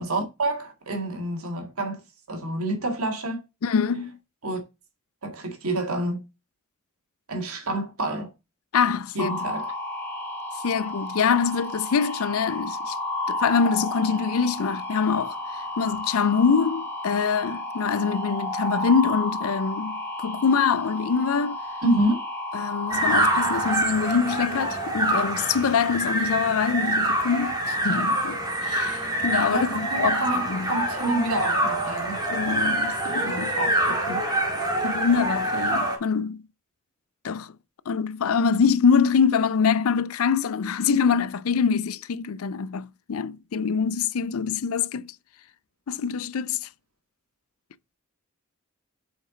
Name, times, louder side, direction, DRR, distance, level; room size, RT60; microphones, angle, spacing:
voice 1, 0.0-2.0 2.3-3.4 4.4-4.6 5.2-6.2 7.3-8.3 9.1-9.7 21.8-22.2 29.5-32.2 33.1-34.2, right 1 dB, 85° right, 2.1 m, -28 dB
voice 2, 3.6-4.2 8.7-9.3 10.6-13.0 13.3-21.6 22.5-30.2 30.5-30.7 32.3-33.5 34.8-36.4 37.2-37.5 37.9-45.1 45.9-46.7, left 6 dB, 75° left, 0.5 m, -24 dB
sound 1, 9.2-23.7, left 1 dB, 10° left, 2.4 m, -32 dB
sound 2, 22.9-36.0, right 1 dB, 20° right, 2.4 m, -26 dB
7.8 x 5.2 x 3.9 m
head